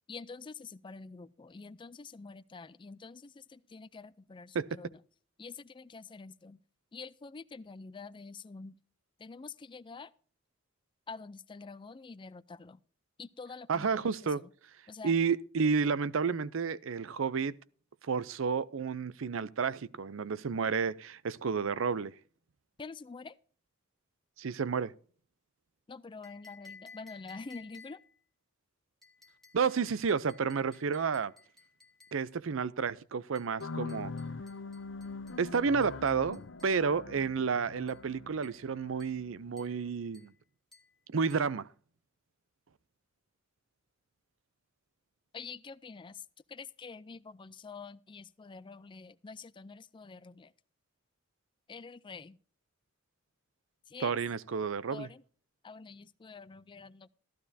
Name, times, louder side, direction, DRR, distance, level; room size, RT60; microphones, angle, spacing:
voice 1, 0.1-5.0 5.4-6.6 6.9-8.8 9.2-10.1 11.1-12.8 13.2-14.5 14.9-15.2 22.8-23.4 25.9-28.0 45.3-50.5 51.7-52.4 53.9-54.1 54.9-55.2 55.6-57.1, left 4 dB, 25° left, 0.4 m, -47 dB
voice 2, 13.7-14.4 15.0-17.5 18.0-22.1 24.4-24.9 29.5-31.3 32.1-34.1 35.4-40.3 41.1-41.7 54.0-55.1, right 5 dB, 70° right, 0.5 m, -31 dB
sound 1, 26.2-28.2 29.0-32.3 33.4-36.8 37.9-38.1 38.4-38.7 39.0-39.3 39.6-39.8 40.1-40.4 40.7-41.0 41.3-41.6, left 4 dB, ahead, 1.6 m, -57 dB
sound 2, 33.6-39.9, left 3 dB, 65° left, 0.7 m, -43 dB
15.0 x 12.0 x 2.7 m
head